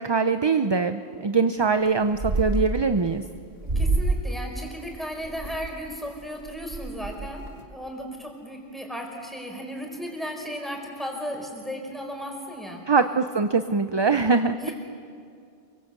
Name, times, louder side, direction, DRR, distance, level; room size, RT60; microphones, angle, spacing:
voice 1, 0.0-3.2 12.9-14.7, right 4 dB, 30° right, 9 dB, 0.6 m, -23 dB
sound 1, 1.6-1.9 2.1-3.2 3.6-4.3 4.7-5.7 6.2-6.3 6.5-7.6, right 3 dB, 65° right, 2.3 m, -27 dB
voice 2, 3.6-12.8 14.6-14.7, equal, ahead, 1 dB, 4.8 m, -35 dB
27.5 x 24.0 x 8.1 m, 2.4 s
omnidirectional pair, 1.1 m